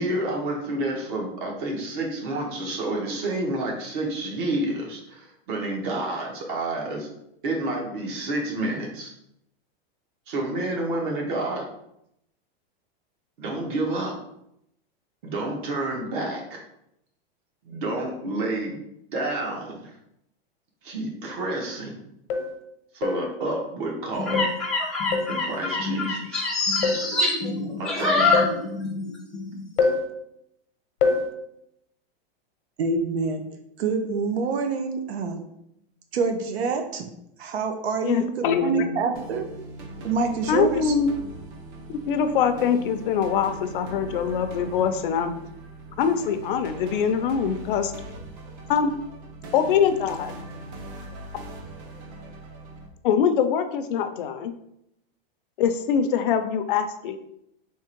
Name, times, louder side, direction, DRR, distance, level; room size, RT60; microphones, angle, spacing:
voice 1, 0.0-7.1 7.4-9.1 10.3-11.6 13.4-14.1 15.2-16.6 17.6-18.8 19.1-19.9 20.8-22.0 22.9-24.5 25.3-26.4 27.8-28.2, right 2 dB, 55° right, -1 dB, 1.4 m, -29 dB
sound 1, 21.3-21.4 22.3-22.6 23.0-23.3 24.3-24.6 25.1-25.4 26.8-27.1 28.3-28.6 29.8-30.1 31.0-31.3, left 4 dB, 80° left, 0.9 m, -24 dB
sound 2, 24.1-29.1 29.3-29.6, left 3 dB, ahead, 0.6 m, -25 dB
voice 2, 32.8-33.4 33.8-35.4 36.1-37.1 37.4-38.3 38.6-39.4 40.0-40.9, right 4 dB, 85° right, 5 dB, 0.8 m, -26 dB
voice 3, 38.0-38.9 40.5-41.1 41.9-45.3 46.0-47.9 48.7-48.9 49.5-50.3 53.0-54.5 55.6-57.2, left 7 dB, 60° left, 9 dB, 0.5 m, -23 dB
sound 3, 39.2-52.9, right 1 dB, 35° right, 0.7 m, -40 dB
3.6 x 3.2 x 4.4 m, 0.78 s
supercardioid pair, 160°, 31 cm